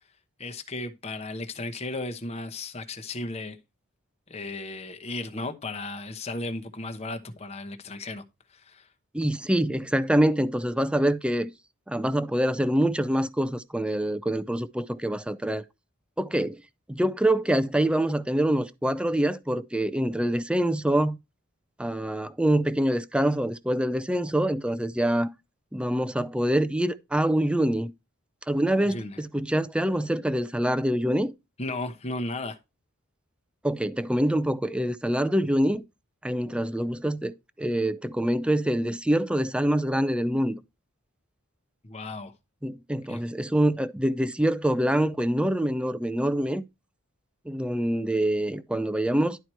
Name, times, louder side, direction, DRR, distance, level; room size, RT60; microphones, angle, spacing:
voice 1, 0.4-3.6 4.3-8.2 8.5-8.9 28.9-29.2 31.6-32.6 41.8-42.3 43.1-43.2, left 2 dB, 30° left, 0.9 m, -35 dB
voice 2, 9.1-11.5 11.9-15.6 16.2-16.6 16.9-21.2 21.8-25.3 25.7-27.9 28.5-31.3 33.6-35.8 36.2-40.6 42.6-46.6 47.5-49.4, right 1 dB, 5° right, 0.4 m, -25 dB
11.0 x 4.6 x 4.4 m
head